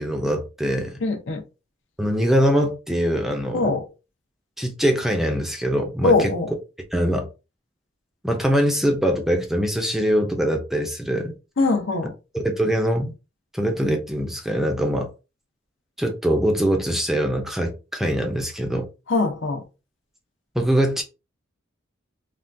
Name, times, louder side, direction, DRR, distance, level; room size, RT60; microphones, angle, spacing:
voice 1, 0.0-1.0 2.0-3.7 4.6-6.3 6.9-7.3 8.2-11.3 12.3-13.1 13.5-15.1 16.0-18.9 20.5-21.0, equal, ahead, 0.5 m, -23 dB
voice 2, 1.0-1.4 3.5-3.9 6.0-6.5 11.6-12.1 19.1-19.6, left 3 dB, 75° left, 0.6 m, -21 dB
3.5 x 2.2 x 2.6 m
head